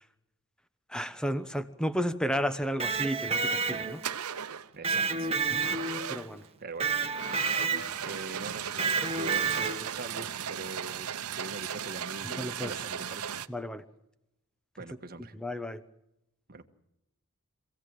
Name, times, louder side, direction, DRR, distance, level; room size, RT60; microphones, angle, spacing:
voice 1, 0.9-4.0 5.5-5.6 6.1-6.4 12.2-12.7 13.5-13.8 15.3-15.8, equal, 5° left, 11 dB, 1.0 m, -32 dB
Electric guitar, 2.6-4.2 4.8-6.2 6.8-8.1 8.8-10.0, right 5 dB, 30° right, 1.6 m, -30 dB
sound 1, 3.4-3.6 4.0-4.7 5.6-6.5 7.1-13.5, right 8 dB, 80° right, 0.9 m, -37 dB
voice 2, 4.7-5.3 5.6-5.8 6.6-6.9 8.0-13.3 14.8-15.3 16.5-16.7, right 3 dB, 45° right, 7 dB, 1.5 m, -42 dB
26.0 x 16.5 x 7.7 m, 0.84 s
head